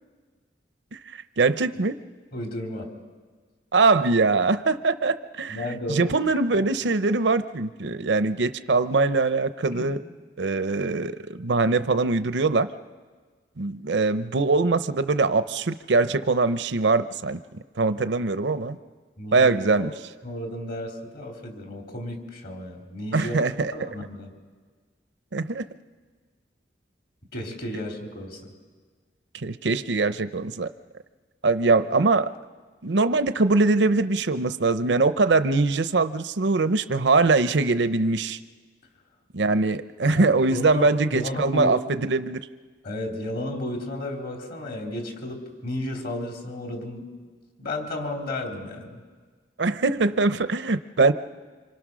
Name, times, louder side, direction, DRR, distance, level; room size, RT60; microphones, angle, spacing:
voice 1, 1.1-2.0 3.7-5.6 5.9-10.0 10.4-12.7 13.6-17.4 17.8-18.8 19.3-19.9 23.1-23.7 25.3-25.6 29.3-30.7 31.4-32.3 32.8-38.4 39.3-42.4 49.6-51.1, right 3 dB, 75° right, 12 dB, 0.7 m, -22 dB
voice 2, 2.3-2.9 5.5-6.2 6.5-6.6 9.7-9.9 19.2-19.9 20.2-23.4 23.7-24.3 27.3-28.5 40.1-40.9 41.1-41.8 42.8-47.0 47.6-49.0, left 1 dB, 60° left, 2 dB, 3.7 m, -33 dB
27.0 x 26.0 x 6.2 m, 1.5 s
head